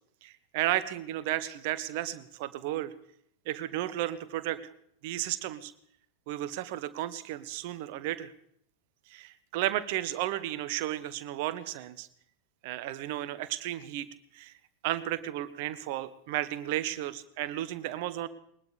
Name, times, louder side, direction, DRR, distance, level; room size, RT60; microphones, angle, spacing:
voice 1, 0.2-2.9 3.5-4.6 5.0-5.7 6.3-8.3 9.1-12.1 12.6-14.1 14.3-14.5 14.8-18.3, right 14 dB, 50° right, 14 dB, 1.1 m, -33 dB
21.0 x 20.0 x 3.4 m, 0.69 s
figure-of-eight pair, 90°, 0 cm